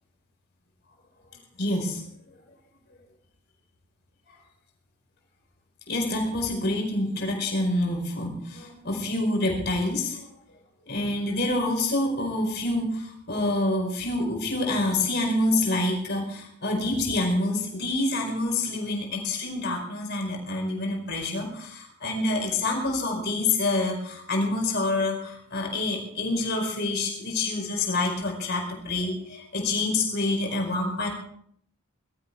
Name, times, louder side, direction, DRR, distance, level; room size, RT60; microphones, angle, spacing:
voice 1, 1.6-2.0 5.9-10.2 10.9-31.1, left 2 dB, 50° left, 1 dB, 4.9 m, -27 dB
22.0 x 13.5 x 3.6 m, 0.67 s
head